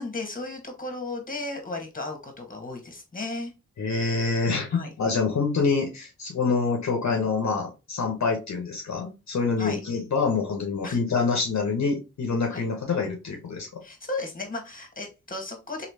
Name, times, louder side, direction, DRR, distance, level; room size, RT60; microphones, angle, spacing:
voice 1, 0.0-3.5 4.7-4.9 9.6-9.8 10.8-11.0 12.5-12.6 13.8-15.9, left 2 dB, 25° left, 1.4 m, -34 dB
voice 2, 3.8-13.7, left 4 dB, 60° left, 1.0 m, -26 dB
3.2 x 2.8 x 2.8 m
cardioid pair, 45°, 31 cm